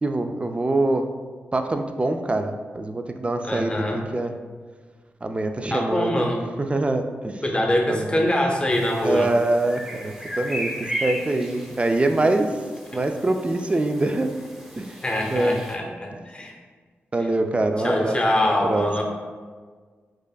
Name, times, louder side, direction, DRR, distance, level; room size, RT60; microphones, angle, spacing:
voice 1, 0.0-1.1 1.5-4.3 5.2-6.3 6.6-7.4 7.9-8.2 9.0-10.7 11.0-12.5 12.9-14.3 14.7-15.0 15.3-15.6 17.1-18.9, right 2 dB, 25° right, 6 dB, 0.3 m, -24 dB
voice 2, 3.4-4.0 5.7-6.4 7.4-9.3 15.0-16.5 17.8-19.0, left 1 dB, 25° left, 0 dB, 0.7 m, -23 dB
sound 1, 8.7-15.7, equal, 10° right, 0.7 m, -36 dB
4.8 x 2.4 x 2.3 m, 1.5 s
cardioid pair, 60°, 4 cm